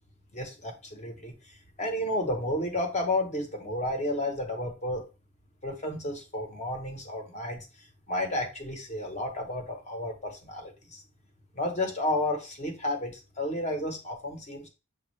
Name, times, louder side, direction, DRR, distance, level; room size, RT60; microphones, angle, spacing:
voice 1, 0.3-1.3 1.8-5.0 5.6-7.7 8.1-11.0 11.6-13.1 13.4-14.7, left 1 dB, 30° left, 3 dB, 0.8 m, -31 dB
6.1 x 2.4 x 3.1 m, 0.30 s
head